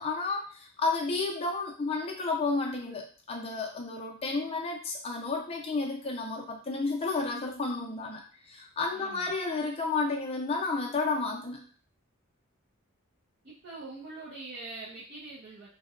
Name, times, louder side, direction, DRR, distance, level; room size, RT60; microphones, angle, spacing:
voice 1, 0.0-11.6, left 3 dB, 30° left, 0 dB, 0.5 m, -31 dB
voice 2, 8.9-9.3 13.4-15.7, right 2 dB, 55° right, -8 dB, 0.7 m, -43 dB
2.7 x 2.1 x 2.4 m, 0.40 s
head